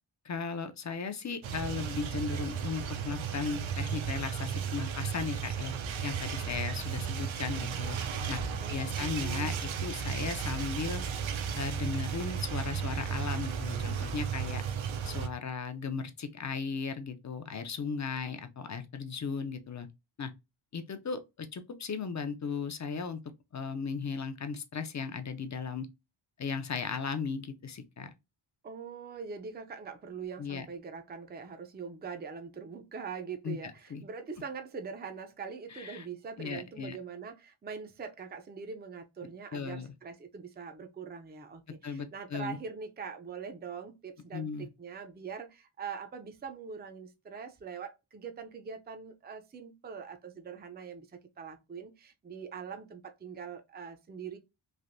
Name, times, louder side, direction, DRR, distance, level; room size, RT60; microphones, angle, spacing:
voice 1, 0.2-5.7 6.0-8.0 8.3-8.4 8.7-11.0 11.6-14.6 15.0-19.9 20.2-20.3 20.7-23.2 23.5-25.9 26.4-28.1 30.4-30.7 33.4-33.6 33.9-34.0 35.7-36.0 36.4-37.0 39.5-39.9 41.8-42.6 44.3-44.7, left 5 dB, 40° left, 0.5 m, -36 dB
sound 1, 1.4-15.3, right 7 dB, 75° right, 0.6 m, -34 dB
voice 2, 8.6-9.6 28.6-54.4, right 6 dB, 20° right, 0.4 m, -43 dB
3.3 x 2.6 x 2.5 m
wide cardioid pair, 90°, 47 cm